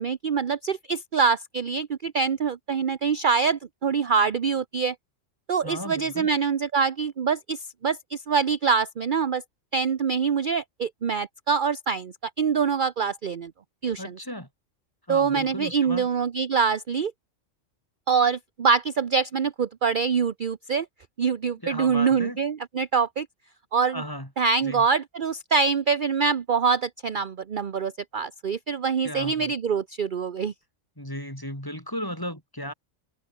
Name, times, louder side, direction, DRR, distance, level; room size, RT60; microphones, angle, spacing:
voice 1, 0.0-4.9 5.5-9.4 9.7-13.5 13.8-14.1 15.1-17.1 18.1-20.9 21.2-23.3 23.7-24.0 24.4-30.5, right 5 dB, 45° right, 0.9 m, -25 dB
voice 2, 5.6-6.3 14.0-14.5 15.1-16.1 21.6-22.4 23.9-24.3 24.6-24.9 29.0-29.5 31.0-32.7, equal, 15° left, 7.6 m, -35 dB
omnidirectional pair, 1.3 m